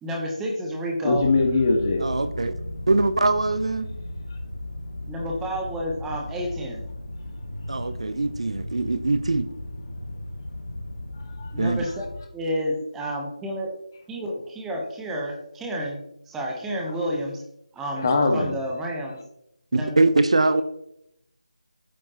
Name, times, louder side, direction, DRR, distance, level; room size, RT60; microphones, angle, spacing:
voice 1, 0.0-1.3 5.1-6.8 11.5-12.1 12.3-13.7 14.1-17.4 17.7-19.2 19.7-20.0, equal, 5° right, -1 dB, 1.1 m, -30 dB
voice 2, 1.0-2.0 11.3-11.8 18.0-18.5, left 3 dB, 30° left, 3 dB, 1.7 m, -22 dB
sound 1, 1.1-12.2, left 1 dB, 50° left, 2.1 m, -36 dB
voice 3, 2.0-2.5 2.9-3.9 7.7-9.5 11.6-11.8 19.7-20.6, right 2 dB, 55° right, 11 dB, 0.8 m, -22 dB
12.0 x 9.1 x 3.0 m, 0.78 s
figure-of-eight pair, 160°, 4 cm